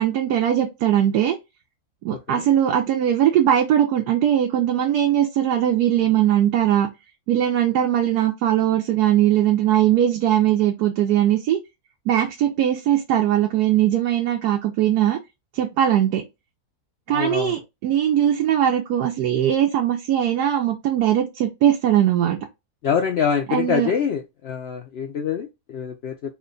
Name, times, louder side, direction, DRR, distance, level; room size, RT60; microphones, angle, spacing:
voice 1, 0.0-1.4 2.0-6.9 7.3-11.6 12.1-15.2 15.5-16.2 17.1-22.4 23.5-23.9, right 11 dB, 85° right, 1.2 m, -20 dB
voice 2, 17.1-17.6 22.8-25.5 25.7-26.1, left 7 dB, 85° left, 0.5 m, -24 dB
3.4 x 2.2 x 3.7 m
omnidirectional pair, 1.6 m